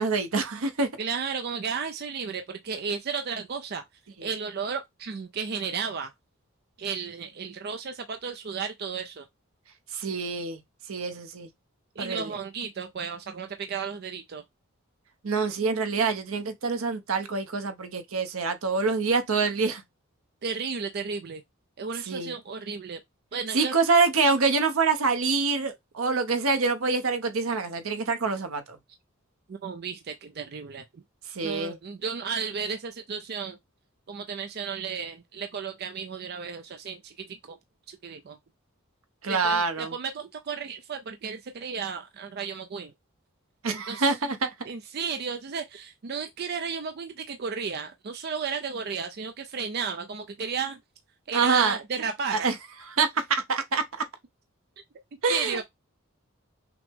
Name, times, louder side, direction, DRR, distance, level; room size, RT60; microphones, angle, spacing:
voice 1, 0.0-0.9 9.9-10.6 10.9-11.5 12.0-12.3 15.2-19.8 22.1-22.3 23.5-28.8 31.3-31.8 39.2-39.9 43.6-44.5 51.3-51.8 52.3-52.6 52.9-54.1 55.2-55.6, right 4 dB, 80° right, 0.8 m, -26 dB
voice 2, 1.0-3.8 4.2-6.1 6.8-9.3 12.0-14.4 20.4-21.4 21.8-23.0 23.3-23.7 29.5-31.0 31.4-33.6 34.1-37.6 37.9-38.4 39.3-42.9 43.7-44.2 44.7-50.8 51.3-52.5 55.3-55.6, right 6 dB, 50° right, 0.4 m, -33 dB
5.9 x 2.1 x 3.4 m
head